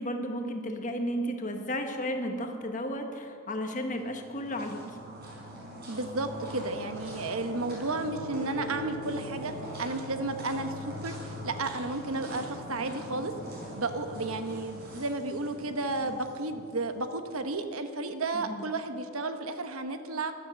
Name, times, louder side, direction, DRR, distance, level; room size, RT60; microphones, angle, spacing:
voice 1, 0.0-5.0 18.3-18.6, equal, 35° left, 4 dB, 1.4 m, -33 dB
sound 1, 3.9-17.2, right 1 dB, 45° right, 4.7 m, -42 dB
voice 2, 5.9-9.5 9.8-13.3 13.7-20.3, right 2 dB, 75° right, 8 dB, 1.1 m, -33 dB
15.0 x 12.0 x 6.6 m, 2.3 s
head